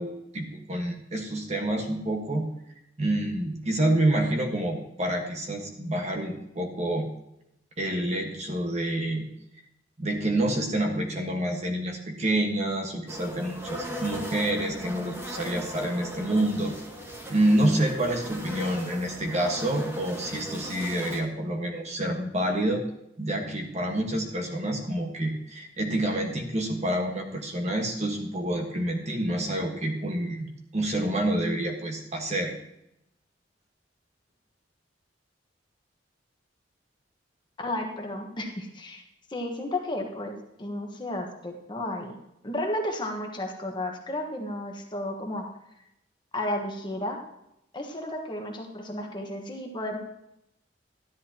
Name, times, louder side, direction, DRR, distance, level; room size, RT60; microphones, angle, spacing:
voice 1, 0.0-2.5 3.0-7.1 7.8-9.2 10.0-16.8 17.3-22.8 23.2-32.6, right 1 dB, 35° right, 2 dB, 1.5 m, -28 dB
sound 1, 13.1-21.2, equal, 15° right, 1.5 m, -38 dB
voice 2, 37.6-39.0 39.3-42.1 42.4-45.5 46.3-47.2 47.7-50.0, left 1 dB, 25° left, 2 dB, 1.4 m, -33 dB
13.0 x 10.5 x 2.9 m, 0.81 s
head